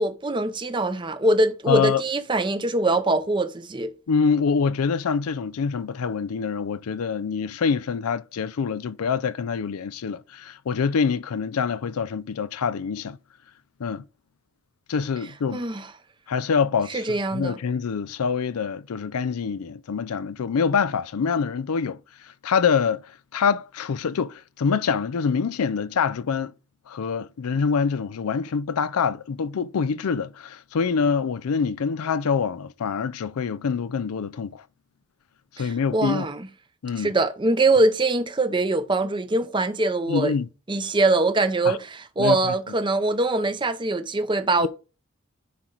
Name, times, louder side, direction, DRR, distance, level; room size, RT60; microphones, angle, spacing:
voice 1, 0.0-3.9 15.5-15.9 16.9-17.6 35.6-36.5 37.0-40.3 40.7-44.7, right 2 dB, 20° right, 0.7 m, -23 dB
voice 2, 1.7-2.0 4.1-13.2 13.8-14.0 14.9-15.6 16.3-23.0 23.3-26.5 26.9-34.6 35.5-36.3 36.8-37.1 40.1-40.5 41.7-41.8 42.2-42.5 44.6-44.7, left 6 dB, 85° left, 0.4 m, -25 dB
10.0 x 4.5 x 3.9 m
head